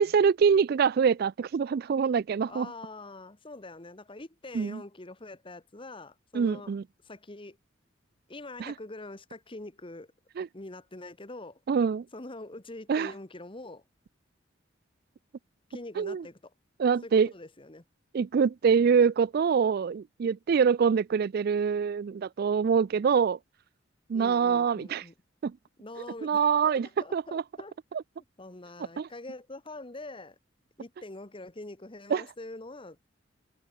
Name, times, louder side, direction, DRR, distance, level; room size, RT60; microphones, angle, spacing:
voice 1, 0.0-2.7 4.5-4.8 6.3-6.8 8.6-8.7 10.4-10.5 11.7-12.0 12.9-13.1 16.0-16.2 16.8-17.3 18.1-23.4 24.1-25.0 25.4-25.5 26.2-26.9 27.1-27.4 29.0-29.1 32.1-32.2, right 6 dB, 55° right, 0.3 m, -25 dB
voice 2, 2.5-6.7 7.0-7.6 8.3-10.1 10.5-11.6 12.1-13.8 15.7-16.5 17.0-17.8 24.1-25.1 25.8-27.8 28.4-30.4 30.8-33.0, left 2 dB, 25° left, 1.4 m, -44 dB
head